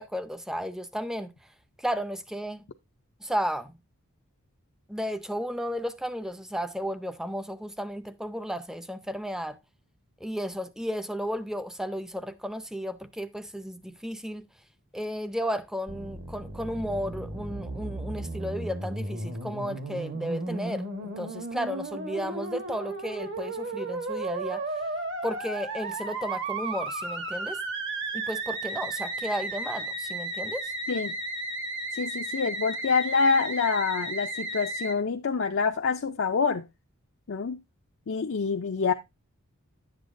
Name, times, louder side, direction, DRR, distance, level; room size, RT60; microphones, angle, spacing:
voice 1, 0.0-1.3 1.8-2.6 3.2-3.8 4.9-9.6 10.2-14.4 14.9-24.6 25.2-27.6 28.1-30.7, equal, ahead, 0.5 m, -33 dB
Musical instrument, 15.9-34.9, right 2 dB, 55° right, 1.4 m, -34 dB
voice 2, 31.9-36.7 37.3-37.6 38.1-38.9, left 5 dB, 60° left, 0.5 m, -26 dB
11.0 x 8.1 x 2.5 m
head